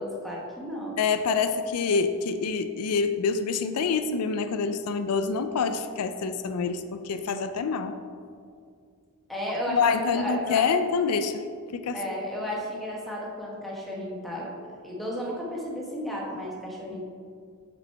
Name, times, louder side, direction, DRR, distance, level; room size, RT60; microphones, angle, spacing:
voice 1, 0.0-0.9 9.3-10.7 11.9-14.5 14.8-17.0, equal, ahead, -4 dB, 1.2 m, -33 dB
voice 2, 1.0-8.0 9.7-11.4 11.7-12.2, left 5 dB, 85° left, 9 dB, 0.4 m, -26 dB
6.5 x 5.0 x 4.5 m, 2.2 s
head